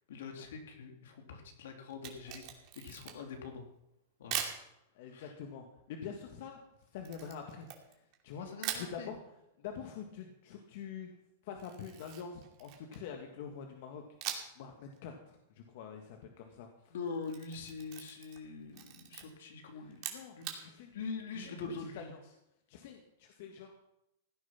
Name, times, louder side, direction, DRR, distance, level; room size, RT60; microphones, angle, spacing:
voice 1, 0.1-3.6 4.2-4.4 5.1-5.3 8.4-9.1 16.9-20.0 20.4-22.1, left 4 dB, 80° left, 3 dB, 3.0 m, -44 dB
Camera, 1.9-3.4 4.3-4.6 7.0-8.2 8.6-8.9 11.6-13.1 14.2-14.6 15.0-15.1 17.1-18.5 18.7-19.2 19.9-20.6, right 10 dB, 45° right, 2.6 m, -41 dB
voice 2, 5.0-6.6 6.9-7.7 8.2-9.2 9.6-11.1 11.4-16.9 20.1-20.9 21.9-22.2 22.7-23.7, left 7 dB, 60° left, 3 dB, 1.9 m, -46 dB
16.5 x 9.7 x 5.8 m, 0.85 s
supercardioid pair, 140°, 0 cm